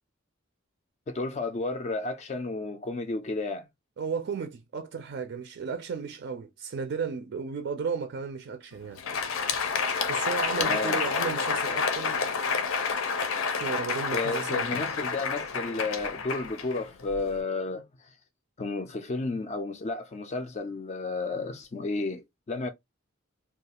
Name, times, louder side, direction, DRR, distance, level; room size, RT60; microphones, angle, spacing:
voice 1, 1.1-3.7 10.6-11.0 14.1-18.1 18.6-22.7, left 3 dB, 35° left, 0.3 m, -32 dB
voice 2, 4.0-9.0 10.1-12.3 13.4-14.8, right 5 dB, 55° right, 0.4 m, -34 dB
Crowd, 8.8-17.3, left 5 dB, 80° left, 0.5 m, -29 dB
2.3 x 2.3 x 2.8 m
head